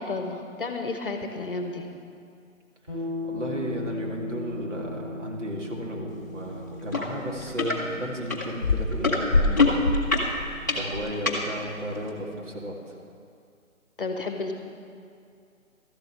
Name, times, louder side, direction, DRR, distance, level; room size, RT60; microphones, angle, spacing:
voice 1, 0.0-1.9 14.0-14.5, left 3 dB, 40° left, 5 dB, 1.0 m, -31 dB
sound 1, 2.9-12.6, left 2 dB, 15° right, 2.5 m, -38 dB
voice 2, 3.2-9.9 10.7-12.8, equal, 60° right, 0 dB, 2.4 m, -34 dB
sound 2, 6.9-7.1 7.4-7.8 8.3-11.4 12.1-12.2, left 3 dB, 15° left, 0.8 m, -22 dB
13.0 x 7.7 x 7.5 m, 2.5 s
hypercardioid pair, 175°, 41 cm